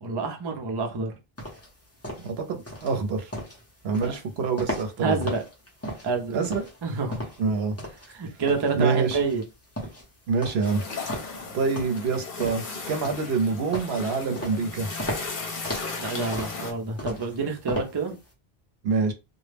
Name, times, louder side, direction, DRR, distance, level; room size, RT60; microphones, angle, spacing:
voice 1, 0.0-1.2 3.9-4.1 5.0-5.4 6.0-6.3 6.8-7.2 8.1-9.4 16.0-18.2, right 4 dB, 40° right, 0.3 m, -28 dB
sound 1, 1.4-18.3, equal, 15° left, 0.6 m, -37 dB
voice 2, 2.2-3.3 3.8-5.3 6.3-6.7 7.4-7.8 8.8-9.2 10.3-10.8 11.5-12.6 12.9-14.9 18.8-19.1, right 4 dB, 75° right, 0.8 m, -26 dB
sound 2, 10.6-16.7, left 4 dB, 55° left, 0.9 m, -36 dB
2.2 x 2.0 x 3.2 m
omnidirectional pair, 1.1 m